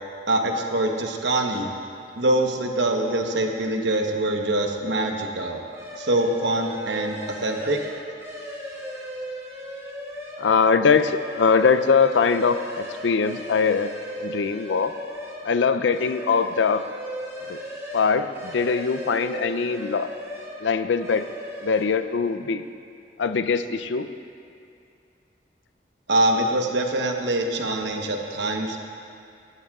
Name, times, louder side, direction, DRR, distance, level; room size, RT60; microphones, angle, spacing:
voice 1, 0.3-1.7 2.2-5.6 6.0-7.8 26.1-28.8, right 1 dB, 70° right, 2 dB, 1.1 m, -24 dB
sound 1, 5.7-10.4 10.8-15.5 15.8-20.6 20.9-21.8, equal, 15° right, 2.8 m, -37 dB
voice 2, 10.4-13.9 14.2-14.9 15.4-16.8 17.5-17.6 17.9-20.1 20.6-21.2 21.6-22.6 23.2-24.1, left 5 dB, 75° left, 11 dB, 0.5 m, -22 dB
18.0 x 12.5 x 2.4 m, 2.4 s
head